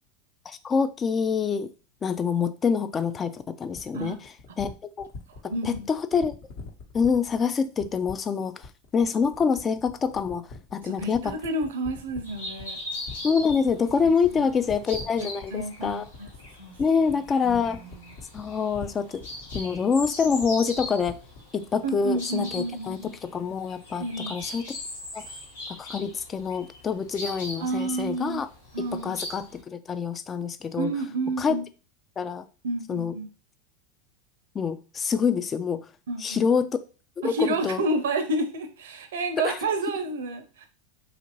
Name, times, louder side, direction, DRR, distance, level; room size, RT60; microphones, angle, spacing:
voice 1, 0.5-1.7 2.0-4.2 4.6-4.7 5.0-5.1 5.4-6.3 6.9-8.7 8.9-11.4 13.2-16.1 16.8-17.8 18.3-19.2 19.5-21.2 21.5-24.6 25.1-25.2 25.7-28.5 28.9-30.9 31.4-31.6 32.2-32.4 32.9-33.1 34.5-35.8 36.2-36.8 37.2-37.8 39.4-39.6, left 6 dB, 25° left, 0.3 m, -26 dB
sound 1, 3.7-21.5, left 4 dB, 55° left, 1.0 m, -42 dB
voice 2, 5.5-5.9 10.8-12.8 14.3-14.4 15.5-16.3 16.6-16.8 17.4-18.2 21.8-23.1 24.0-24.4 27.6-28.4 28.7-29.2 30.8-31.6 32.6-33.3 36.1-36.4 37.2-40.7, right 2 dB, 75° right, 0.6 m, -30 dB
sound 2, 12.2-29.6, left 2 dB, 85° left, 1.2 m, -40 dB
2.9 x 2.5 x 2.9 m
hypercardioid pair, 90°, 0 cm